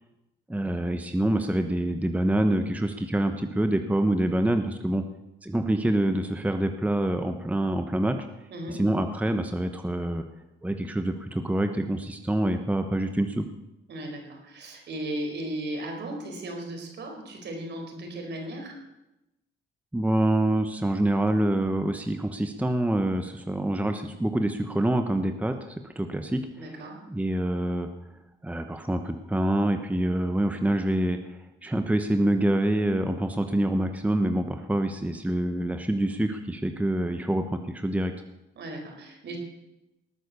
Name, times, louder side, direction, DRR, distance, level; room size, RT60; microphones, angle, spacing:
voice 1, 0.5-5.0 5.4-8.3 8.7-10.2 10.6-13.5 19.9-26.4 27.1-27.9 28.4-38.1, right 1 dB, 5° right, 7 dB, 1.0 m, -26 dB
voice 2, 8.5-8.9 13.9-18.8 26.6-27.0 38.6-39.4, right 1 dB, 60° right, 3 dB, 4.6 m, -36 dB
19.0 x 9.1 x 6.9 m, 0.94 s
cardioid pair, 90°, 20 cm